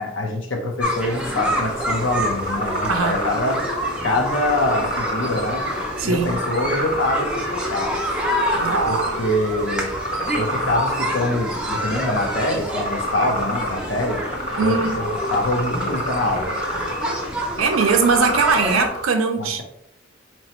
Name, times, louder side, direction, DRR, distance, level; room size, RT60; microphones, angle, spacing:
voice 1, 0.0-3.6 4.0-5.7 6.0-8.2 8.9-9.9 10.3-14.2 14.6-16.6 19.4-19.6, left 1 dB, 65° left, 0.8 m, -24 dB
sound 1, 0.8-18.9, equal, 5° right, 0.5 m, -28 dB
sound 2, 1.3-19.0, equal, 35° left, 1.0 m, -29 dB
voice 2, 2.8-3.2 6.0-6.4 8.5-9.3 14.6-15.0 17.6-19.6, right 5 dB, 80° right, 0.5 m, -21 dB
4.1 x 3.0 x 2.9 m
head